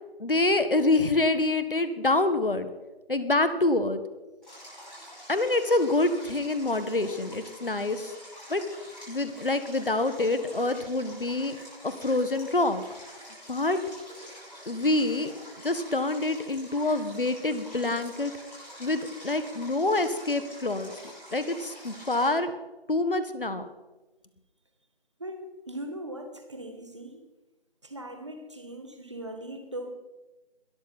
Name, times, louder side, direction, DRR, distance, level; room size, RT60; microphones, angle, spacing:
voice 1, 0.2-2.7 3.1-4.0 5.3-8.1 8.5-8.6 9.1-11.6 11.8-12.8 13.5-13.8 14.7-15.3 15.6-18.3 18.8-20.9 21.3-22.5 22.9-23.7, left 2 dB, 60° left, 11 dB, 1.8 m, -26 dB
Stream, 4.4-22.3, equal, ahead, 5.3 m, -47 dB
voice 2, 25.7-27.2 27.8-30.0, right 1 dB, 30° right, 5 dB, 1.9 m, -39 dB
22.0 x 13.0 x 4.4 m, 1.1 s
figure-of-eight pair, 170°, 31 cm